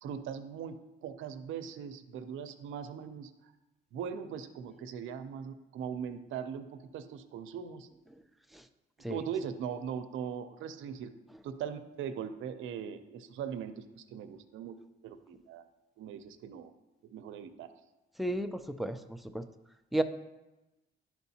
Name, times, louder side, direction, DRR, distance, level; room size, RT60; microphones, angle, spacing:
voice 1, 0.0-3.3 3.9-7.9 9.1-11.1 11.4-14.8 15.0-15.7 16.0-16.7 17.0-17.7, right 7 dB, 80° right, 9 dB, 0.5 m, -40 dB
voice 2, 18.2-19.4 19.9-20.0, right 1 dB, ahead, 8 dB, 0.4 m, -33 dB
11.0 x 4.5 x 2.8 m, 1.0 s
cardioid pair, 90°, 20 cm